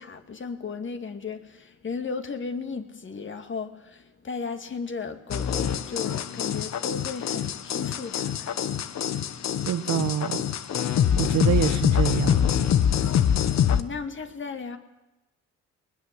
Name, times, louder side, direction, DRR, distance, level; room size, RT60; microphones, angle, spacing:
voice 1, 0.0-8.8 13.6-14.8, left 5 dB, 40° left, 7 dB, 2.4 m, -35 dB
sound 1, 5.3-13.8, left 9 dB, 60° left, 1.2 m, -24 dB
voice 2, 9.6-10.4 11.2-12.4, right 10 dB, 70° right, 11 dB, 1.4 m, -26 dB
20.5 x 20.0 x 7.8 m, 1.0 s
cardioid pair, 90°, 30 cm